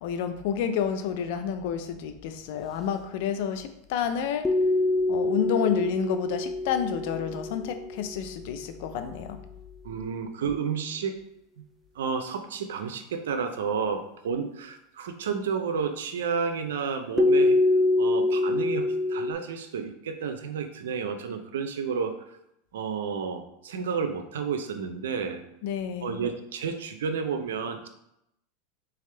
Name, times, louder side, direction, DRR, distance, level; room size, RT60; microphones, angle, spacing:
voice 1, 0.0-4.5 5.1-9.4 25.6-26.2, left 8 dB, 65° left, 9 dB, 0.5 m, -29 dB
sound 1, 4.4-8.6 17.2-19.3, left 2 dB, 5° left, 0.4 m, -25 dB
voice 2, 9.8-11.2 12.0-17.6 18.0-22.1 22.7-25.4 26.0-27.9, right 6 dB, 85° right, 7 dB, 0.5 m, -31 dB
3.7 x 3.4 x 3.3 m, 0.80 s
supercardioid pair, 120°, 0 cm